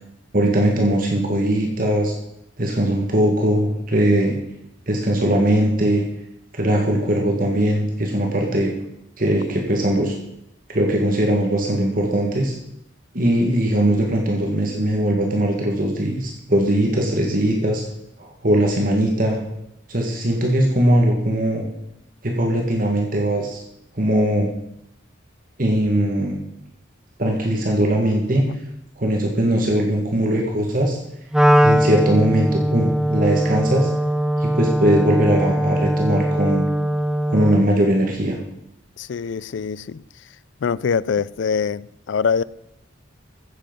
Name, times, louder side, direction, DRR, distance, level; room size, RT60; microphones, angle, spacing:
voice 1, 0.3-2.1 2.6-4.4 4.9-6.0 6.5-8.7 9.2-10.2 10.7-12.5 13.1-17.8 18.2-19.4 19.9-21.7 22.2-23.6 23.9-24.5 25.6-26.4 27.2-28.5 29.0-31.0 31.6-33.9 34.4-36.7 37.3-38.4, right 1 dB, 45° right, 1.7 m, -20 dB
Wind instrument woodwind instrument, 31.3-37.7, equal, 5° right, 0.3 m, -20 dB
voice 2, 39.0-40.0 40.6-42.4, left 6 dB, 70° left, 0.4 m, -23 dB
15.5 x 7.7 x 5.3 m
head